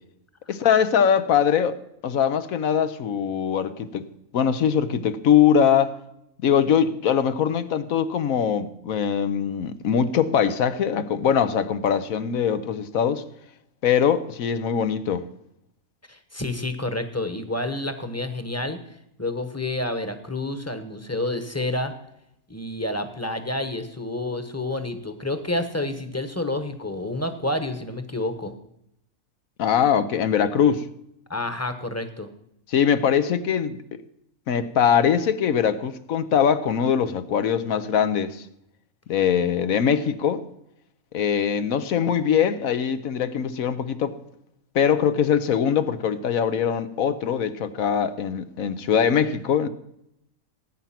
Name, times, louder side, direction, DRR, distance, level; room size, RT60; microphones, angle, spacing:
voice 1, 0.5-4.1 4.3-6.0 6.4-13.2 13.8-15.2 29.6-30.8 32.7-33.8 34.5-38.4 39.1-40.4 41.1-44.2 44.7-49.7, left 8 dB, 75° left, 1.3 m, -22 dB
voice 2, 16.1-18.8 19.2-21.9 22.5-28.5 31.3-32.3, left 2 dB, 10° left, 1.1 m, -29 dB
18.0 x 9.2 x 5.9 m
omnidirectional pair, 1.5 m